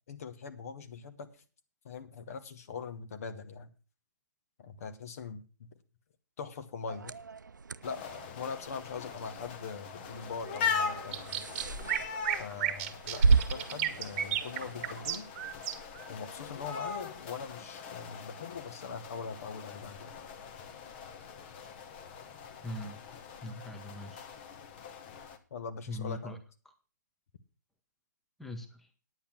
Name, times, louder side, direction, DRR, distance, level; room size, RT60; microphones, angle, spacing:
voice 1, 0.1-1.3 1.8-3.7 4.6-5.7 6.4-7.1 7.8-11.5 12.4-15.3 16.1-20.1 25.5-26.4, left 5 dB, 50° left, 9 dB, 1.4 m, -42 dB
sound 1, 6.9-15.2, right 4 dB, 75° right, 0.5 m, -34 dB
sound 2, 7.8-25.4, left 6 dB, 35° left, 1.3 m, -41 dB
sound 3, 11.1-16.1, right 10 dB, 35° right, 1.4 m, -33 dB
voice 2, 22.6-23.0 23.4-24.3 25.9-26.4 28.4-28.9, left 1 dB, ahead, 6 dB, 1.1 m, -41 dB
9.6 x 8.6 x 6.0 m, 0.36 s
figure-of-eight pair, 130°, 10 cm